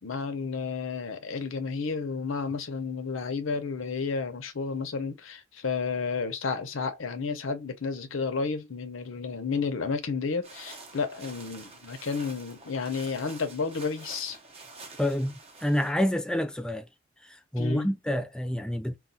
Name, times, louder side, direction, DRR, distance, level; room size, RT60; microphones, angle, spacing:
voice 1, 0.0-14.4 17.6-17.9, left 4 dB, 70° left, 0.7 m, -31 dB
sound 1, 10.4-15.9, right 3 dB, 30° right, 0.7 m, -47 dB
voice 2, 15.0-15.3 15.6-16.9 17.2-19.0, left 1 dB, 5° left, 0.3 m, -28 dB
2.3 x 2.3 x 4.0 m
head